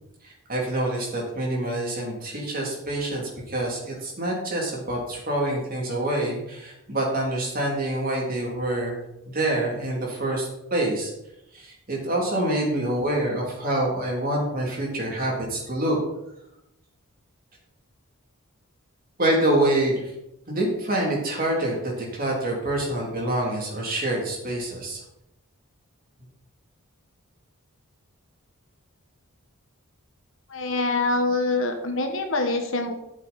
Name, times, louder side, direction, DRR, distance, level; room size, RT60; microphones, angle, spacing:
voice 1, 0.2-9.0 9.3-11.1 11.5-16.0 19.2-20.1 20.5-25.0, right 1 dB, 40° right, -2 dB, 3.4 m, -26 dB
voice 2, 30.5-32.9, left 2 dB, 60° left, 4 dB, 1.5 m, -25 dB
13.0 x 7.4 x 4.4 m, 0.85 s
head